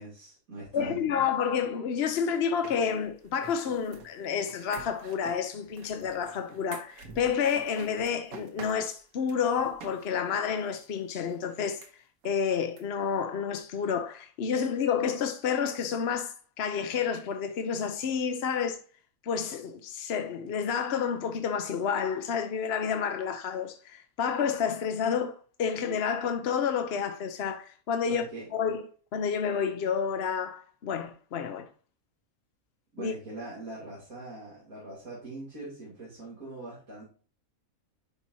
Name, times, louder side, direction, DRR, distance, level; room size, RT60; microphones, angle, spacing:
voice 1, 0.0-1.1 28.0-28.5 32.9-37.0, right 2 dB, 70° right, 3.3 m, -42 dB
voice 2, 0.7-11.8 12.2-18.8 19.2-28.2 28.5-28.8 29.1-31.7 33.0-33.1, left 7 dB, 55° left, 0.8 m, -30 dB
sound 1, 2.4-10.1 10.3-10.4 10.8-10.9 11.3-11.4 11.8-11.9 12.2-12.3 12.8-12.9 13.1-13.2, right 5 dB, 90° right, 1.6 m, -48 dB
10.5 x 4.3 x 2.7 m
omnidirectional pair, 1.5 m